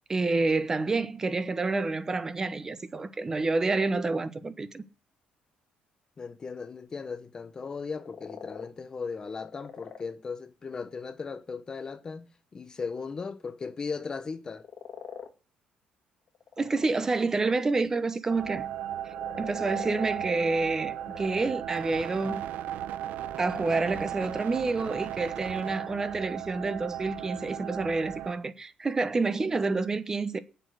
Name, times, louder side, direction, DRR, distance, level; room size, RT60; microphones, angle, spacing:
voice 1, 0.1-4.8 16.6-18.7 19.4-22.4 23.4-30.4, right 3 dB, 20° right, 1.0 m, -28 dB
voice 2, 6.2-14.6, left 5 dB, 25° left, 0.9 m, -37 dB
sound 1, 8.0-8.7 9.3-10.0 14.5-15.3 16.3-16.9 18.9-20.3 20.8-21.5 21.9-22.0 24.1-24.2 24.5-24.9, left 7 dB, 40° left, 2.0 m, -43 dB
sound 2, 18.3-28.3, right 11 dB, 70° right, 0.9 m, -36 dB
8.9 x 7.7 x 7.9 m
cardioid pair, 160°, 3 cm